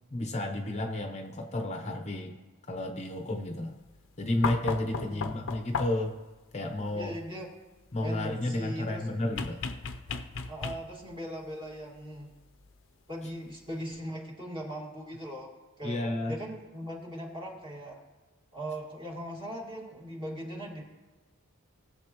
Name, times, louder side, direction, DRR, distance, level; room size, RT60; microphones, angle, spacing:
voice 1, 0.1-2.3 2.7-3.8 4.2-6.2 6.5-7.1 7.9-9.6 15.8-16.3, left 1 dB, 30° left, 4 dB, 0.8 m, -32 dB
sound 1, 4.4-6.2 9.4-11.1 12.6-12.7, left 4 dB, 60° left, 0.7 m, -35 dB
voice 2, 5.0-5.5 6.9-7.5 8.0-9.0 10.5-12.3 13.1-15.5 15.8-16.0 16.3-18.0 18.5-20.8, equal, 25° right, -2 dB, 2.1 m, -39 dB
20.0 x 7.2 x 3.0 m, 1.2 s
head